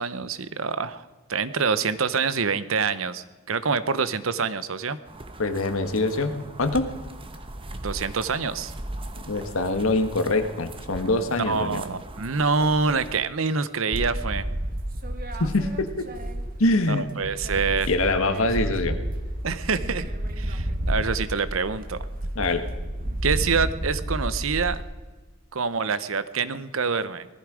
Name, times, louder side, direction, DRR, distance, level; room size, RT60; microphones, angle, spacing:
voice 1, 0.0-5.0 7.8-8.7 11.5-14.5 16.9-17.9 19.4-22.0 23.2-24.8 25.5-27.3, right 5 dB, 80° right, 14 dB, 0.8 m, -26 dB
sound 1, 5.1-13.2, right 1 dB, 25° right, 1.1 m, -39 dB
voice 2, 5.4-6.9 9.3-11.8 15.4-16.1 16.6-17.1 17.9-18.9 22.3-22.6, left 2 dB, 90° left, 8 dB, 1.5 m, -24 dB
sound 2, 13.9-16.8 17.1-24.8, right 1 dB, 45° right, 1.6 m, -30 dB
19.0 x 14.5 x 5.0 m, 1.3 s
head